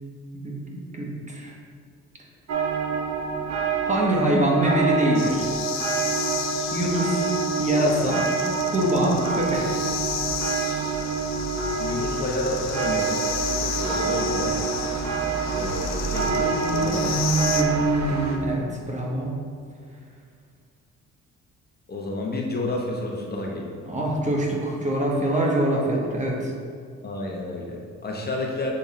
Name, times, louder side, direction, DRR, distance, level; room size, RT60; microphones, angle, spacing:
voice 1, 0.4-1.5 3.8-5.5 6.7-7.2 7.6-8.3 8.6-9.8 16.2-19.3 23.9-26.5, right 1 dB, 25° right, -2 dB, 1.0 m, -24 dB
sound 1, 2.5-18.4, right 5 dB, 60° right, 0.8 m, -27 dB
sound 2, 5.1-17.6, left 8 dB, 60° left, 0.5 m, -33 dB
voice 2, 11.8-14.6 15.5-17.1 21.9-23.8 27.0-28.7, left 2 dB, 30° left, -1 dB, 0.9 m, -30 dB
6.6 x 3.5 x 4.2 m, 2.1 s
cardioid pair, 90°, 30 cm